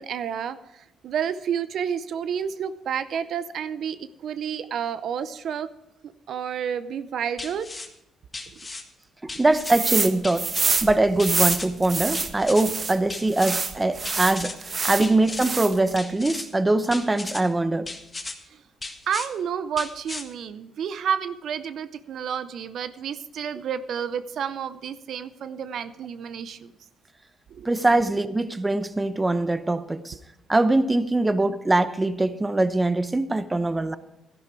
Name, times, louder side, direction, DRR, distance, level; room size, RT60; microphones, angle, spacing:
voice 1, 0.0-5.7 6.3-7.7 15.0-15.1 19.1-26.7 27.5-27.7, right 8 dB, 70° right, 0.6 m, -30 dB
sound 1, 7.4-7.9 8.3-8.8 9.3-9.8 10.2-10.7 11.2-11.7 12.1-12.6 13.1-13.6 14.0-14.5 15.0-15.5 15.9-16.5 16.9-17.4 17.9-18.3 18.8-19.3 19.8-20.2, left 3 dB, 25° left, 1.6 m, -36 dB
voice 2, 9.2-10.5 10.8-14.6 14.8-17.9 27.6-30.2 30.5-34.0, right 2 dB, 15° right, 0.8 m, -22 dB
sound 2, 9.6-10.1 10.4-13.0 13.3-15.1 15.4-15.9, right 4 dB, 40° right, 1.2 m, -26 dB
13.0 x 11.0 x 4.7 m
cardioid pair, 90°, 0 cm